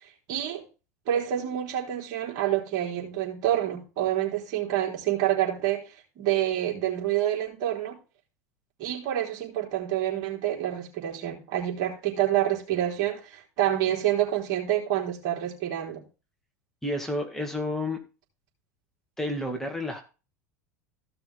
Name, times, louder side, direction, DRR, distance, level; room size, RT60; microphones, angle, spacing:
voice 1, 0.3-0.6 1.1-8.0 8.8-16.0, right 12 dB, 50° right, 3.9 m, -27 dB
voice 2, 16.8-18.0 19.2-20.0, left 1 dB, 5° left, 2.1 m, -30 dB
15.5 x 6.0 x 3.5 m
figure-of-eight pair, 75°, 9 cm